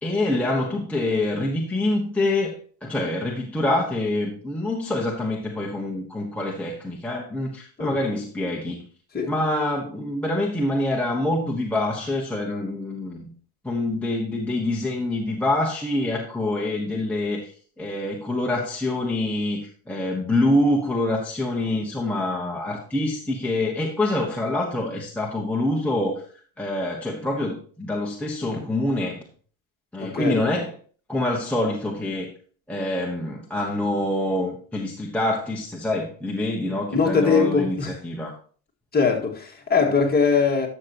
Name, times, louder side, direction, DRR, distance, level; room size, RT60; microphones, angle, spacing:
voice 1, 0.0-8.8 9.3-13.3 13.6-17.5 17.8-26.2 26.6-29.2 29.9-30.7 31.1-32.3 32.7-38.4, left 1 dB, 5° left, 1.1 m, -26 dB
voice 2, 30.0-30.4 36.9-37.9 38.9-40.7, left 5 dB, 20° left, 2.0 m, -21 dB
11.5 x 6.8 x 3.0 m
cardioid pair, 120°, 48 cm